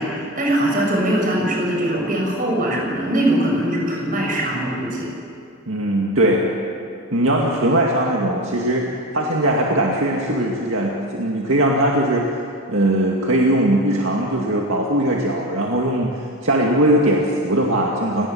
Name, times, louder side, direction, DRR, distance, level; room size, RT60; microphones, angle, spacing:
voice 1, 0.0-5.1, right 1 dB, 40° right, -1 dB, 6.6 m, -21 dB
voice 2, 5.7-6.5 7.1-8.9 9.1-12.3 12.7-16.1 16.4-18.3, right 1 dB, 70° right, -1 dB, 2.2 m, -19 dB
30.0 x 19.0 x 7.2 m, 2.4 s
head